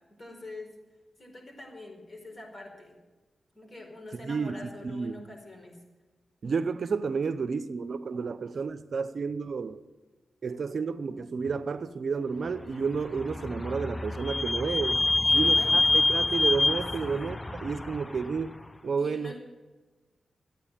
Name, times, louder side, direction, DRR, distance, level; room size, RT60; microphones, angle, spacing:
voice 1, 0.2-0.7 1.2-3.0 3.5-5.8 15.2-16.0 17.0-17.3 19.0-19.6, left 2 dB, 40° left, 4.5 m, -45 dB
voice 2, 4.1-5.2 6.4-9.8 10.4-15.0 15.3-19.4, right 5 dB, 60° right, 0.6 m, -31 dB
Vehicle / Squeak, 12.9-18.5, left 2 dB, 25° left, 0.4 m, -26 dB
13.0 x 9.2 x 8.9 m
cardioid pair, 75°, 0 cm